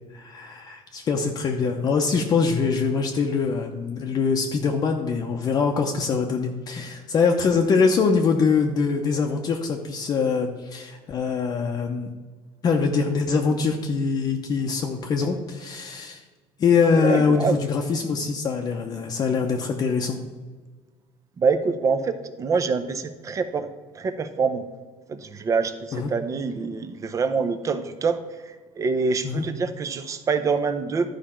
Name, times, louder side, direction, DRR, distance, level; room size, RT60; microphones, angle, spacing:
voice 1, 0.1-12.1 12.6-16.2 16.6-20.2 25.9-26.1 29.2-29.4, left 5 dB, 35° left, 2 dB, 0.7 m, -23 dB
voice 2, 16.9-17.6 21.4-23.7 24.0-24.6 25.1-31.1, right 4 dB, 30° right, 10 dB, 0.7 m, -25 dB
12.0 x 5.0 x 4.4 m, 1.4 s
cardioid pair, 130°, 11 cm